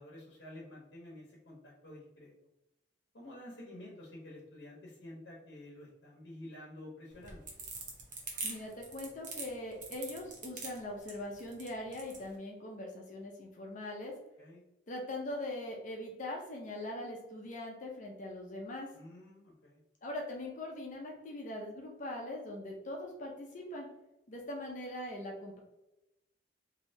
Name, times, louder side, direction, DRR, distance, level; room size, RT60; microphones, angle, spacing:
voice 1, 0.0-2.3 3.1-7.5 14.4-14.6 18.9-19.8, left 1 dB, 85° left, -3 dB, 0.8 m, -50 dB
sound 1, 7.1-12.2, right 4 dB, 50° right, 0.8 m, -42 dB
voice 2, 8.4-14.1 14.9-18.9 20.0-23.9 24.3-25.6, left 1 dB, 45° left, 0 dB, 0.6 m, -41 dB
3.2 x 2.7 x 2.7 m, 0.93 s
head